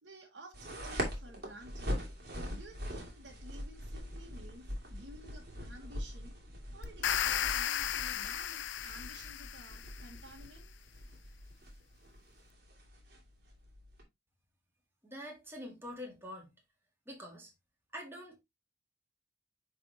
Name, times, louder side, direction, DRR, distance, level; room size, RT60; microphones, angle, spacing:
voice 1, 0.0-2.0 2.5-6.4 6.7-10.7, right 1 dB, 75° right, 1.5 m, -53 dB
sound 1, 0.5-14.0, equal, 60° right, 2.3 m, -43 dB
sound 2, 6.8-10.0, left 10 dB, 80° left, 0.5 m, -34 dB
voice 2, 15.0-16.5 17.1-17.5 17.9-18.4, equal, 15° right, 2.0 m, -45 dB
9.6 x 3.5 x 2.8 m
head